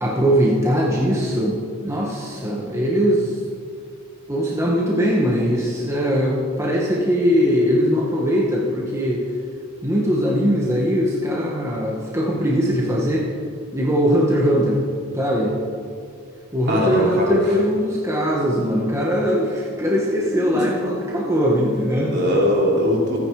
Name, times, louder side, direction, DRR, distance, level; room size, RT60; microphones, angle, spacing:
voice 1, 0.0-1.6 1.8-3.4 4.3-9.2 9.8-13.3 13.7-14.8 15.1-15.5 16.5-22.1, equal, 15° right, -4 dB, 1.7 m, -20 dB
voice 2, 16.7-17.5 20.5-20.7 22.1-23.3, equal, 50° right, -3 dB, 4.0 m, -21 dB
27.5 x 9.6 x 5.0 m, 2.2 s
head